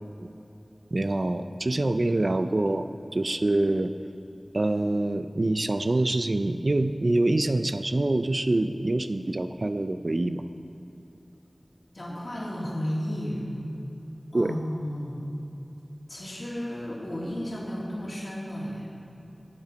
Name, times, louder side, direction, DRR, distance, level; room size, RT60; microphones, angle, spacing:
voice 1, 0.9-3.9 4.5-10.4 14.3-14.5, right 2 dB, 55° right, 10 dB, 0.4 m, -25 dB
voice 2, 11.9-13.5 14.3-15.2 16.1-18.9, equal, 60° left, -5 dB, 2.7 m, -33 dB
11.0 x 8.2 x 5.1 m, 3.0 s
wide cardioid pair, 60°, 0 cm